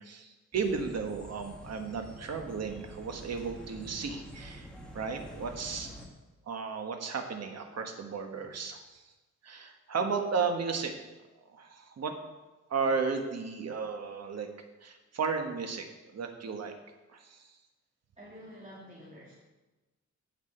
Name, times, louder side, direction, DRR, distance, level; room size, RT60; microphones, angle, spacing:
voice 1, 0.0-4.7 4.9-5.9 6.5-9.1 9.4-10.9 11.5-12.1 12.7-14.5 14.8-16.7 17.1-17.5, right 5 dB, 60° right, 5 dB, 1.5 m, -34 dB
sound 1, 0.5-6.1, equal, 5° left, 1.7 m, -47 dB
voice 2, 18.2-19.3, equal, 25° right, -8 dB, 2.8 m, -49 dB
16.5 x 6.0 x 4.4 m, 1.1 s
wide cardioid pair, 130°, 29 cm